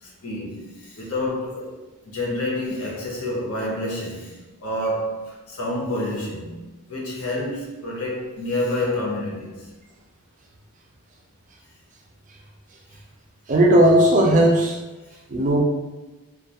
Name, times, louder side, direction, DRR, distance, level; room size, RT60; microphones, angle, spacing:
voice 1, 0.0-4.3 4.6-6.5 6.9-9.5, left 1 dB, 80° left, -2 dB, 0.7 m, -28 dB
voice 2, 13.5-14.8 15.3-15.6, right 1 dB, 35° right, 0 dB, 0.3 m, -16 dB
2.3 x 2.2 x 2.8 m, 1.1 s
head